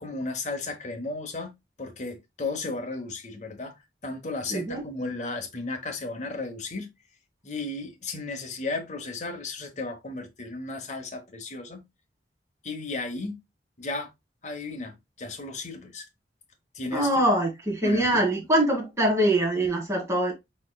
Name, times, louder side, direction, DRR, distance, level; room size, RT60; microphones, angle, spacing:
voice 1, 0.0-1.5 1.8-3.7 4.0-6.9 7.4-11.8 12.6-13.4 13.8-14.1 14.4-16.0 16.7-17.2 17.8-18.2, left 3 dB, 40° left, 1.0 m, -34 dB
voice 2, 4.5-4.8 16.9-20.3, right 1 dB, 15° right, 1.5 m, -23 dB
4.3 x 4.3 x 2.3 m
head